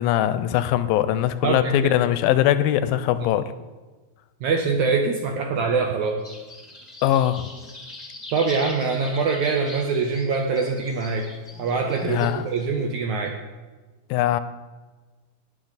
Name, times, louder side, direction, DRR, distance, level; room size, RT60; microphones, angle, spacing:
voice 1, 0.0-3.5 7.0-7.5 12.0-12.5 14.1-14.4, left 12 dB, 85° left, 13 dB, 2.3 m, -21 dB
voice 2, 1.4-2.0 3.2-3.3 4.4-6.2 8.3-11.3 11.6-13.4, right 4 dB, 75° right, 3 dB, 1.8 m, -24 dB
sound 1, 6.2-12.7, left 1 dB, 25° left, 0.8 m, -41 dB
19.0 x 6.8 x 4.0 m, 1.3 s
omnidirectional pair, 4.3 m